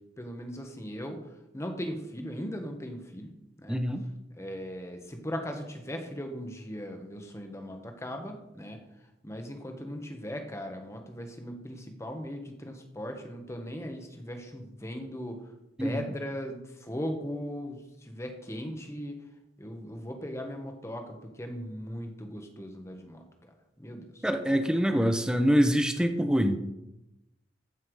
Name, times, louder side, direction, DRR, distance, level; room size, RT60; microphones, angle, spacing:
voice 1, 0.2-3.3 3.6-3.8 4.3-8.8 9.2-15.4 15.8-19.2 19.6-24.3, equal, 15° left, 4 dB, 1.4 m, -38 dB
voice 2, 3.7-4.0 15.8-16.0 24.2-26.6, equal, 5° right, 7 dB, 0.7 m, -25 dB
14.0 x 5.8 x 4.8 m, 0.90 s
head